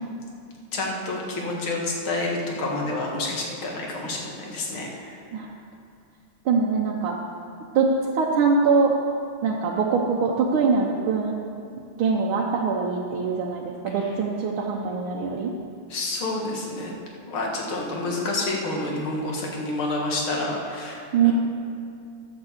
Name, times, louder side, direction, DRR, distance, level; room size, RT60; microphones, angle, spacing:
voice 1, 0.7-5.2 14.0-14.1 15.9-16.9 17.3-21.3, left 2 dB, 75° left, -1 dB, 2.5 m, -29 dB
voice 2, 6.4-7.1 7.7-9.0 9.4-11.3 12.0-15.5 21.1-21.3, right 5 dB, 75° right, -2 dB, 1.7 m, -23 dB
11.5 x 6.7 x 7.2 m, 2.4 s
omnidirectional pair, 2.3 m